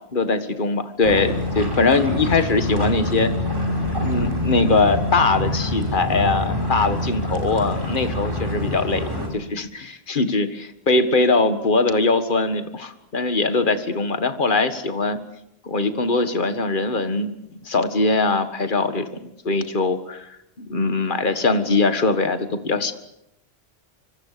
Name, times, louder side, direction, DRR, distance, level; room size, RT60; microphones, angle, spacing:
voice 1, 0.1-3.3 4.0-15.2 15.6-17.3 17.6-20.3 20.6-22.9, left 3 dB, 50° left, 9 dB, 1.9 m, -21 dB
sound 1, 1.0-9.3, left 1 dB, 20° right, 5.5 m, -25 dB
26.0 x 25.0 x 6.8 m, 0.83 s
omnidirectional pair, 1.1 m